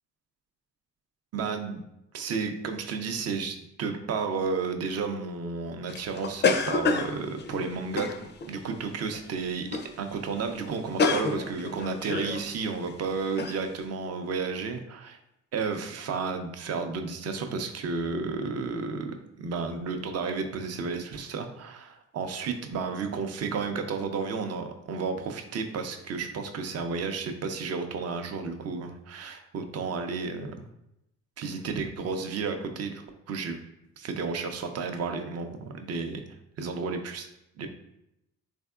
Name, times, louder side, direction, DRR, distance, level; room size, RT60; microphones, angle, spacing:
voice 1, 1.3-1.8 2.1-8.1 8.5-9.7 10.0-15.2 15.5-30.6 31.4-33.6 34.0-36.2 36.6-37.3 37.6-37.7, right 4 dB, 55° right, 6 dB, 0.5 m, -32 dB
sound 1, 5.9-8.6 9.1-9.3 9.7-10.0 10.2-10.3 10.6-12.4 12.9-13.0 13.4-13.6, left 4 dB, 35° left, 0.4 m, -28 dB
3.5 x 3.4 x 2.3 m, 0.85 s
cardioid pair, 90°, 30 cm